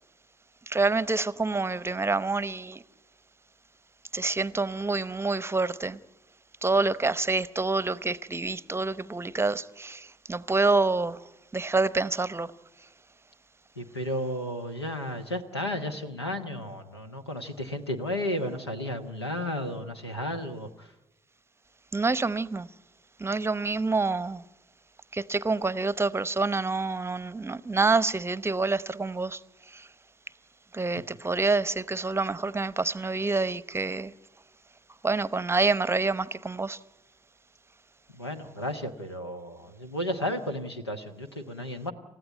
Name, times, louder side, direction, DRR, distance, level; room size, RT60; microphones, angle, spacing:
voice 1, 0.7-2.8 4.1-6.0 6.6-11.2 11.5-12.5 21.9-22.7 23.2-24.4 25.1-29.4 29.7-29.9 30.7-34.1 35.0-36.8, right 3 dB, 20° right, 0.8 m, -27 dB
voice 2, 13.8-20.9 38.1-41.9, left 1 dB, 85° left, 1.1 m, -33 dB
29.0 x 14.5 x 9.2 m
figure-of-eight pair, 40°, 13 cm